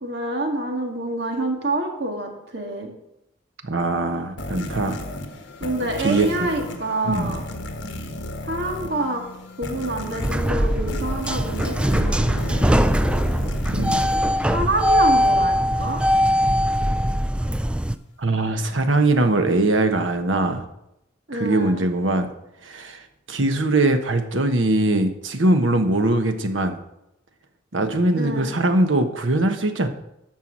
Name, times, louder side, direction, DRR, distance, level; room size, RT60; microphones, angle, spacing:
voice 1, 0.0-2.9 5.6-7.4 8.4-9.2 9.6-12.8 14.5-16.0 21.3-21.9 28.2-28.5, right 2 dB, 60° right, 2 dB, 1.8 m, -27 dB
voice 2, 3.6-5.0 6.0-6.5 7.0-7.3 13.7-14.0 18.2-20.6 21.3-22.3 22.6-23.0 23.3-26.8 27.7-29.9, right 2 dB, 90° right, 7 dB, 1.2 m, -21 dB
sound 1, 4.4-15.2, left 1 dB, 70° left, 1.4 m, -34 dB
sound 2, 10.2-17.9, equal, 5° right, 0.3 m, -21 dB
13.0 x 4.7 x 7.4 m, 0.85 s
head